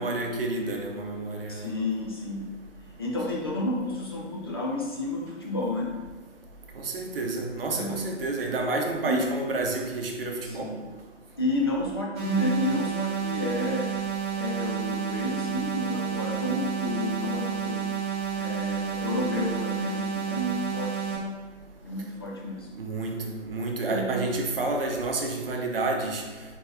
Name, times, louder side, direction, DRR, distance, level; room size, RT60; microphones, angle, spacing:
voice 1, 0.0-1.7 6.8-10.7 22.8-26.2, right 2 dB, 50° right, 2 dB, 0.8 m, -29 dB
voice 2, 1.5-2.5 3.0-5.9 7.7-8.1 9.0-9.2 10.4-10.9 11.4-13.9 14.3-17.9 18.4-21.3 21.8-22.7 23.9-24.3, left 2 dB, 20° left, -3 dB, 0.4 m, -31 dB
sound 1, 12.2-21.2, right 8 dB, 30° right, 1.2 m, -30 dB
4.5 x 4.0 x 2.5 m, 1.3 s
figure-of-eight pair, 135°, 37 cm